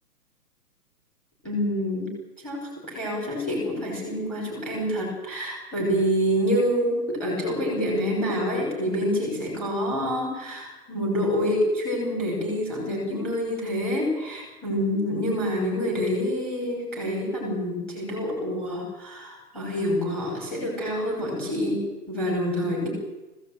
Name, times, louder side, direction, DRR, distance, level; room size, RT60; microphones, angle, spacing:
voice 1, 1.4-2.1 2.4-22.9, equal, ahead, -2 dB, 5.6 m, -27 dB
19.5 x 16.5 x 8.9 m, 1.1 s
hypercardioid pair, 180°, 47 cm